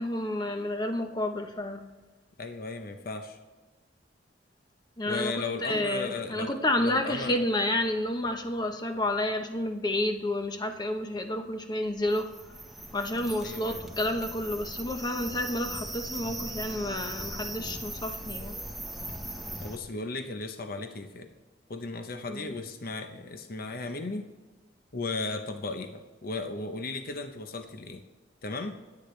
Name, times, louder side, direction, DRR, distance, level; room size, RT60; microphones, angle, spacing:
voice 1, 0.0-1.8 5.0-5.3 5.6-12.5 12.9-18.6 22.3-22.5, left 1 dB, 25° left, 6 dB, 0.9 m, -30 dB
voice 2, 2.4-3.4 5.0-7.4 13.4-13.8 19.6-21.3 21.7-24.3 24.9-28.0 28.4-28.8, left 3 dB, 50° left, 7 dB, 0.9 m, -36 dB
sound 1, 12.0-19.8, right 1 dB, ahead, 1.2 m, -39 dB
25.5 x 8.7 x 3.3 m, 1.3 s
head